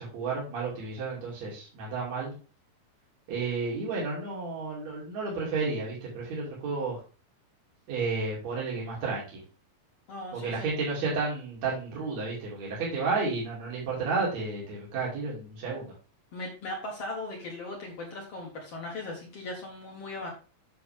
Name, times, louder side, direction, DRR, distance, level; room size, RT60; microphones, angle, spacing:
voice 1, 0.0-2.3 3.3-7.0 7.9-9.4 10.3-15.9, right 4 dB, 50° right, -5 dB, 3.7 m, -32 dB
voice 2, 10.1-10.7 16.3-20.3, left 2 dB, 50° left, -1 dB, 2.2 m, -38 dB
8.3 x 6.4 x 3.5 m, 0.35 s
omnidirectional pair, 4.1 m